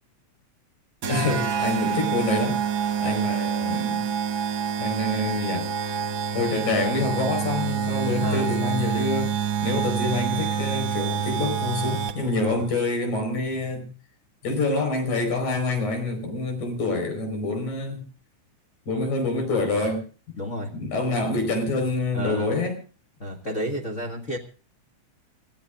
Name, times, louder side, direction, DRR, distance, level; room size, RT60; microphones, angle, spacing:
sound 1, 1.0-12.4, right 8 dB, 50° right, 1.7 m, -27 dB
voice 1, 1.1-2.6 3.0-4.1 4.8-5.7 6.3-9.3 9.6-13.9 14.4-18.0 18.9-20.0 20.7-22.7, left 2 dB, 80° left, 6 dB, 6.3 m, -26 dB
voice 2, 8.2-8.6 12.4-12.6 20.4-20.7 22.1-22.5 23.2-24.4, equal, 35° left, 0 dB, 1.4 m, -31 dB
28.0 x 15.5 x 2.5 m, 0.37 s
omnidirectional pair, 3.4 m